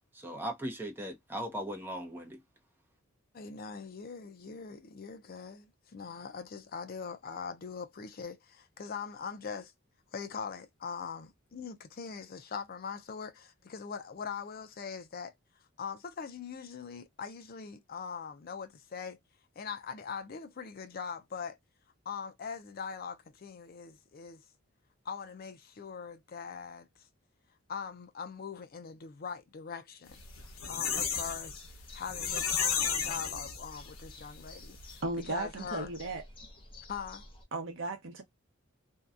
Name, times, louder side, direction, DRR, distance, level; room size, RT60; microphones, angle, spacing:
voice 1, 0.1-2.4, right 1 dB, 10° right, 0.7 m, -38 dB
voice 2, 3.3-9.7 10.1-15.3 15.8-19.2 19.6-21.6 22.1-24.4 25.0-26.9 27.7-30.2 30.7-31.6 31.9-35.9 36.9-37.2, left 6 dB, 45° left, 0.5 m, -42 dB
sound 1, 30.1-37.4, left 1 dB, 25° left, 0.8 m, -51 dB
sound 2, 30.2-34.0 34.4-34.5 34.8-34.9, left 7 dB, 80° left, 0.9 m, -33 dB
voice 3, 35.0-36.2 37.5-38.2, right 2 dB, 60° right, 0.8 m, -35 dB
2.7 x 2.2 x 2.4 m
head